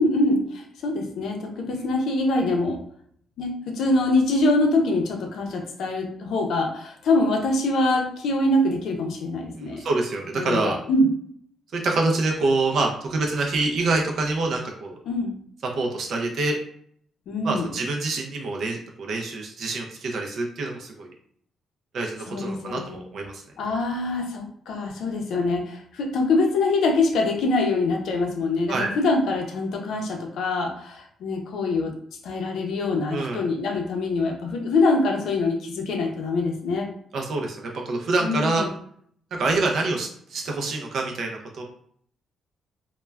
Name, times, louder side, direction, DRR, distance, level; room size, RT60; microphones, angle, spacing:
voice 1, 0.0-2.8 3.4-9.8 10.3-11.1 15.1-15.3 17.3-17.7 22.3-23.0 23.6-31.9 32.2-36.9 38.2-38.7, left 2 dB, 65° left, 2 dB, 0.5 m, -24 dB
voice 2, 9.6-10.8 11.7-15.0 15.6-16.6 17.4-21.1 21.9-23.4 28.7-28.9 33.1-33.4 37.1-38.7 39.4-41.6, right 3 dB, 50° right, 1 dB, 0.4 m, -26 dB
2.2 x 2.1 x 3.2 m, 0.64 s
cardioid pair, 175°, 0 cm